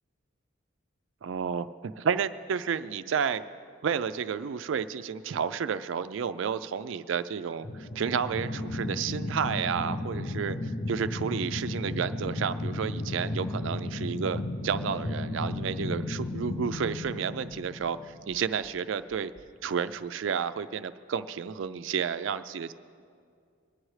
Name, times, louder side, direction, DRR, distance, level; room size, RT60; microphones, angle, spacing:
voice 1, 1.2-3.4 3.8-19.3 19.6-22.7, right 7 dB, 70° right, 13 dB, 0.4 m, -31 dB
sound 1, 7.6-18.6, left 2 dB, 60° left, 0.7 m, -34 dB
sound 2, 17.5-19.4, right 1 dB, 80° left, 3.8 m, -59 dB
22.0 x 10.0 x 3.2 m, 2.3 s
head